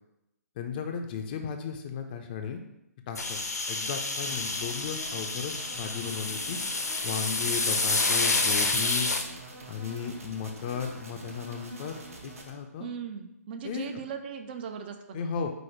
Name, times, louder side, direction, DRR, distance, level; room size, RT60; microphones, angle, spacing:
voice 1, 0.6-2.6 3.1-3.4 3.7-6.6 7.0-9.1 9.7-12.9 13.6-13.9 15.1-15.5, left 6 dB, 35° left, 4 dB, 0.4 m, -35 dB
sound 1, 3.1-9.2, left 3 dB, 85° left, 0.5 m, -29 dB
sound 2, 4.2-12.5, right 2 dB, 60° right, 0.9 m, -45 dB
voice 2, 12.8-15.3, right 7 dB, 35° right, 6 dB, 0.4 m, -39 dB
4.9 x 2.0 x 4.3 m, 0.86 s
figure-of-eight pair, 135°, 9 cm